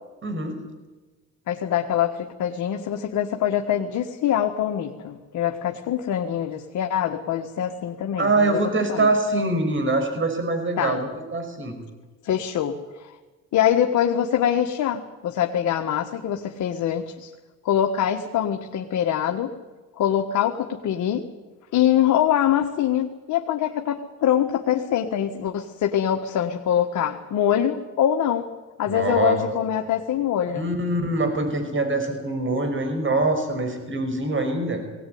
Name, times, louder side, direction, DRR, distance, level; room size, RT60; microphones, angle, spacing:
voice 1, 0.2-0.6 8.2-11.8 28.9-29.4 30.5-34.8, right 2 dB, 40° right, 6 dB, 5.7 m, -24 dB
voice 2, 1.5-8.6 8.9-9.1 10.8-11.1 12.2-13.1 13.5-17.3 17.6-19.5 19.9-21.2 21.7-28.5 28.8-30.7, left 10 dB, 75° left, 3 dB, 1.5 m, -24 dB
19.5 x 18.0 x 9.4 m, 1.2 s
cardioid pair, 90°, 30 cm